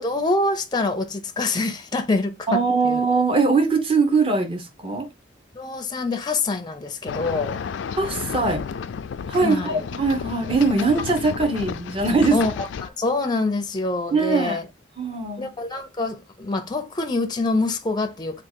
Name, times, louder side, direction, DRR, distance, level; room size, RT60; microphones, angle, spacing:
voice 1, 0.0-3.0 5.5-7.6 9.4-9.9 12.3-14.7 15.4-18.4, left 3 dB, 25° left, 0.5 m, -25 dB
voice 2, 2.5-5.1 8.0-8.7 9.3-12.4 14.1-14.6 15.0-15.5, right 4 dB, 30° right, 0.9 m, -21 dB
sound 1, 7.1-12.9, left 6 dB, 80° left, 0.3 m, -32 dB
3.6 x 2.4 x 4.4 m
head